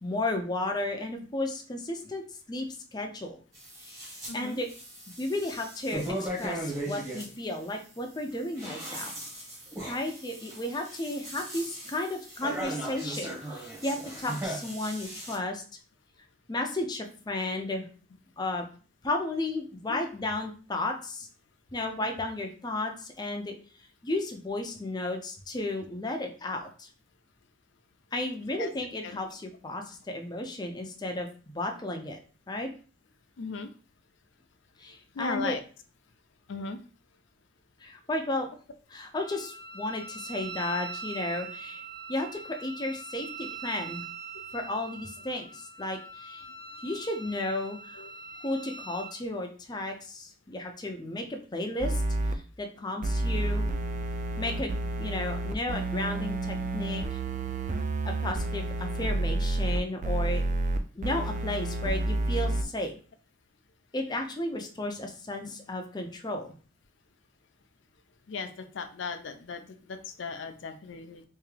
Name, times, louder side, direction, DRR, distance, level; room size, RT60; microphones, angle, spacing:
voice 1, 0.0-2.2 2.5-3.4 3.8-4.7 5.2-9.1 9.9-15.6 16.5-17.9 18.4-18.7 19.0-21.3 21.7-23.5 24.0-26.9 28.1-32.2 32.5-32.7 34.8-35.6 37.8-38.5 38.9-41.8 42.1-44.0 44.5-46.4 46.8-48.0 48.4-52.0 52.3-53.7 54.4-57.2 58.0-60.4 60.9-63.0 63.9-66.5, left 2 dB, 20° left, 3 dB, 0.6 m, -33 dB
sound 1, 3.5-4.3 4.7-7.3 8.3-15.4, right 1 dB, 15° right, 1.3 m, -38 dB
voice 2, 4.3-4.6 19.9-20.0 28.4-28.7 29.0-29.1 33.4-33.7 35.1-35.6 36.5-36.8 48.0-48.1 68.3-71.2, left 4 dB, 75° left, 8 dB, 0.5 m, -37 dB
Wind instrument woodwind instrument, 39.2-49.2, right 4 dB, 90° right, 1.2 m, -42 dB
sound 2, 51.8-52.3 53.0-62.6, right 2 dB, 40° right, 0.4 m, -30 dB
3.5 x 2.8 x 3.2 m, 0.39 s
head